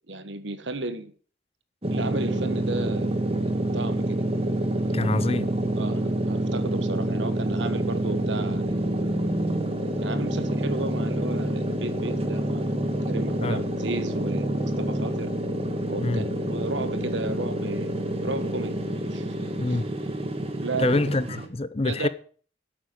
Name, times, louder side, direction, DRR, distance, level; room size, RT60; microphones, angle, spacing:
voice 1, 0.1-1.1 1.9-3.1 3.7-4.3 5.7-8.8 10.0-12.8 13.1-14.5 14.8-15.3 15.9-18.0 18.2-19.3 19.7-19.8 20.6-21.0 21.8-22.1, right 2 dB, 75° right, 1.6 m, -33 dB
sound 1, 1.8-21.5, right 1 dB, 30° right, 2.0 m, -27 dB
voice 2, 4.9-5.5 13.4-13.6 16.0-16.3 19.6-19.9 20.8-22.1, left 2 dB, 30° left, 0.7 m, -25 dB
12.0 x 8.9 x 7.6 m
head